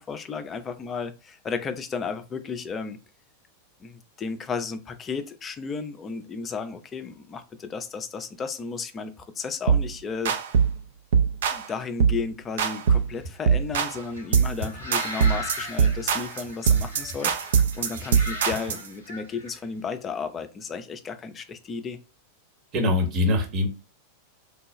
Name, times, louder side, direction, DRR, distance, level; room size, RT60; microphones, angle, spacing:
voice 1, 0.1-3.0 3.8-10.4 11.5-17.3 17.8-22.0, left 5 dB, 20° left, 0.4 m, -33 dB
sound 1, 9.7-9.9 10.2-10.8 11.1-11.6 12.0-12.2 12.6-13.1 13.5-14.0 14.3-14.6 14.9-18.9, right 7 dB, 60° right, 0.4 m, -22 dB
sound 2, 13.1-19.5, left 1 dB, 80° right, 1.4 m, -38 dB
voice 2, 22.7-23.7, left 2 dB, 35° right, 0.9 m, -23 dB
3.3 x 2.2 x 3.0 m
figure-of-eight pair, 90°, 0 cm